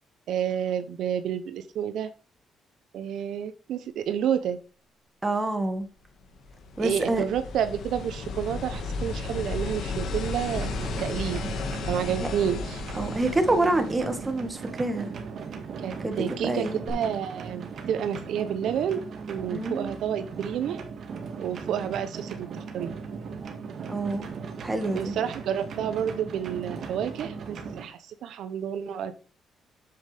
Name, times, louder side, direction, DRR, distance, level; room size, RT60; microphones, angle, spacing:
voice 1, 0.3-2.1 2.9-4.6 6.8-10.7 11.0-11.4 11.9-12.8 15.8-19.0 19.3-20.8 21.4-22.9 24.9-29.1, right 9 dB, 75° right, 0.8 m, -30 dB
voice 2, 5.2-5.9 6.8-7.2 12.2-12.3 13.0-15.1 16.0-16.8 19.5-19.9 23.9-24.3 24.6-25.1, right 2 dB, 20° right, 1.9 m, -27 dB
sound 1, 6.2-14.7 16.9-17.0, left 3 dB, 70° left, 1.9 m, -34 dB
sound 2, 10.5-27.9, right 5 dB, 60° right, 2.0 m, -38 dB
7.9 x 7.3 x 3.5 m
cardioid pair, 90°, 0 cm